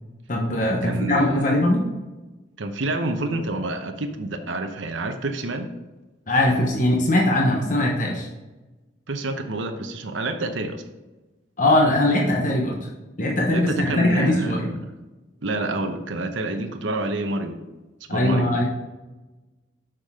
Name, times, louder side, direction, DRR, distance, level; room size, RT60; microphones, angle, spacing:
voice 1, 0.3-1.8 6.3-8.3 11.6-12.9 13.2-14.7 18.1-18.6, left 1 dB, 40° left, -1 dB, 1.0 m, -21 dB
voice 2, 0.8-1.5 2.6-5.7 9.1-10.8 13.5-14.9 15.4-17.6 18.1-18.5, right 2 dB, 80° right, 6 dB, 0.9 m, -28 dB
6.6 x 6.0 x 3.6 m, 1.1 s
head